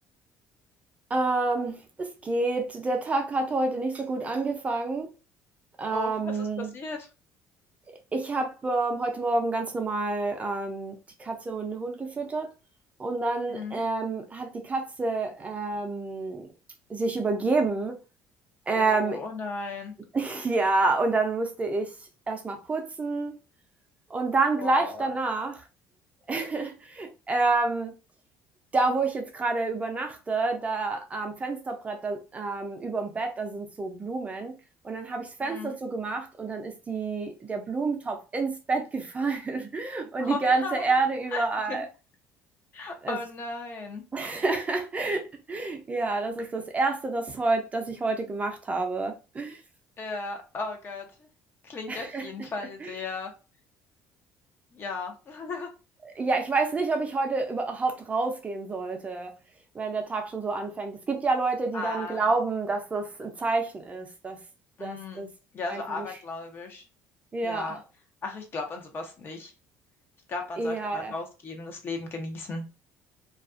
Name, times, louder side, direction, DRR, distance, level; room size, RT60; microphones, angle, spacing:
voice 1, 1.1-5.1 5.8-6.7 8.1-12.5 13.0-16.5 16.9-18.0 18.7-19.2 20.1-21.9 22.3-23.4 24.1-25.6 26.3-27.9 28.7-34.5 34.8-41.9 43.0-43.2 44.1-49.6 51.9-52.2 52.8-52.9 56.2-59.3 59.7-64.4 64.8-65.3 65.7-66.1 67.3-67.8 70.6-71.1, right 3 dB, 25° right, 0.5 m, -28 dB
voice 2, 5.9-7.1 13.5-13.8 18.8-19.9 24.6-25.1 35.4-35.8 40.2-40.8 41.3-41.9 42.7-44.0 50.0-51.3 51.6-53.3 54.7-55.7 61.7-62.3 64.8-65.3 65.5-66.8 67.4-67.8 68.2-69.5 70.3-72.6, left 3 dB, 40° left, 0.7 m, -36 dB
2.4 x 2.2 x 2.4 m
supercardioid pair, 95°, 6 cm